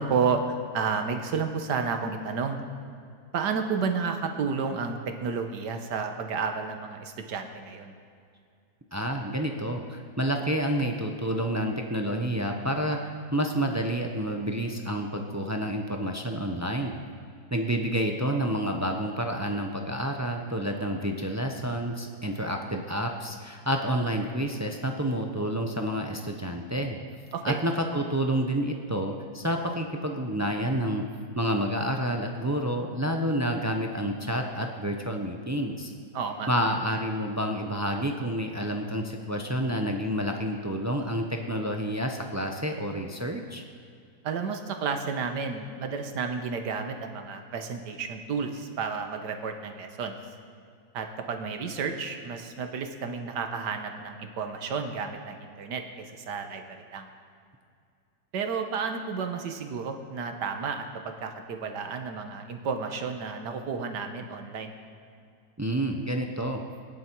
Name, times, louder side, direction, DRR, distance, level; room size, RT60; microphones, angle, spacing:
voice 1, 0.0-2.6 3.3-7.9 27.3-27.6 36.1-36.5 44.2-50.1 50.9-56.6 56.9-57.1 58.3-64.8, right 5 dB, 85° right, 6 dB, 1.7 m, -31 dB
voice 2, 8.9-16.9 17.5-27.0 27.4-31.0 31.4-35.9 36.5-43.6 65.6-66.6, equal, 20° right, 3 dB, 0.4 m, -29 dB
19.0 x 10.5 x 4.6 m, 2.3 s
omnidirectional pair, 1.8 m